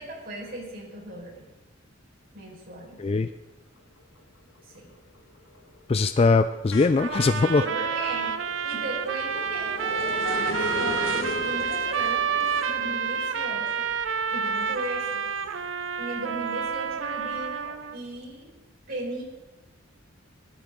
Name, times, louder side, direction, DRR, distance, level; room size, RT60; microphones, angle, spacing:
voice 1, 0.0-1.4 2.3-3.0 4.6-4.9 7.6-8.3 8.6-13.9 14.3-15.2 16.0-18.5 18.9-19.2, right 2 dB, 50° right, -3 dB, 5.0 m, -37 dB
sound 1, 3.8-4.2 4.6-15.8 16.3-18.0, left 1 dB, 80° left, 1.5 m, -38 dB
voice 2, 5.9-7.7, left 3 dB, 30° left, 10 dB, 0.3 m, -21 dB
sound 2, 7.0-18.0, right 6 dB, 70° right, 0.7 m, -29 dB
19.0 x 13.0 x 3.8 m, 1.1 s
head